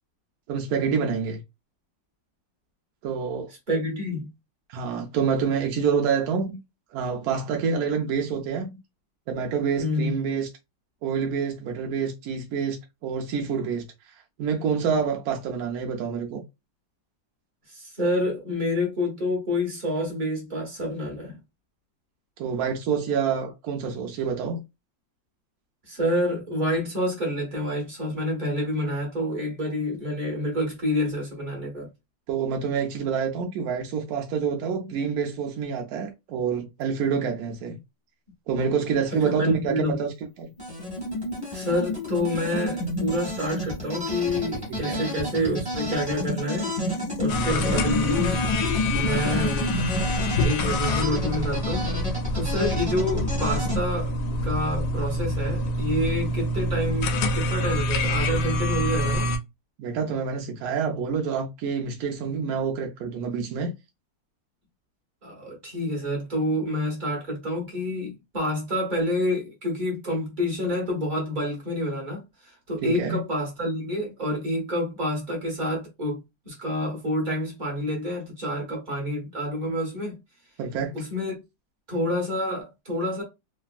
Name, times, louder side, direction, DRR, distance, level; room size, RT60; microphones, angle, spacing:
voice 1, 0.5-1.4 3.0-3.5 4.7-6.6 6.9-8.8 9.3-10.5 11.0-13.9 14.4-16.4 22.4-24.6 32.3-37.8 38.5-40.1 40.4-40.5 44.7-45.0 59.8-63.7 72.8-73.2 80.6-80.9, right 6 dB, 70° right, 0.9 m, -27 dB
voice 2, 3.7-4.3 9.8-10.2 17.7-21.4 25.9-31.9 39.1-40.0 41.5-46.7 47.2-48.4 48.9-49.7 50.2-54.1 54.4-59.3 65.2-80.2 80.9-81.4 81.9-83.2, left 1 dB, 30° right, 1.1 m, -28 dB
sound 1, 36.8-36.9 40.3-50.5, left 5 dB, 90° left, 0.7 m, -39 dB
sound 2, 40.6-53.8, left 1 dB, 5° right, 1.1 m, -30 dB
sound 3, 47.3-59.4, left 1 dB, 75° left, 1.0 m, -27 dB
3.2 x 2.3 x 2.4 m
omnidirectional pair, 2.0 m